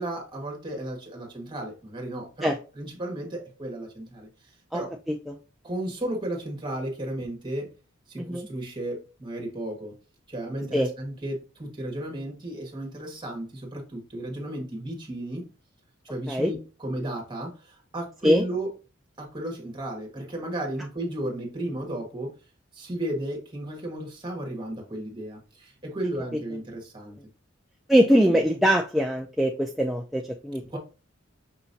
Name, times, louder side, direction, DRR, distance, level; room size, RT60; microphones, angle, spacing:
voice 1, 0.0-4.3 4.7-4.9 5.6-7.7 8.1-9.9 10.3-15.5 16.0-18.7 19.2-22.3 22.7-27.2 30.6-30.8, right 1 dB, 25° right, 1 dB, 1.5 m, -34 dB
voice 2, 27.9-30.8, equal, ahead, 1 dB, 0.3 m, -22 dB
5.7 x 3.0 x 2.7 m, 0.34 s
head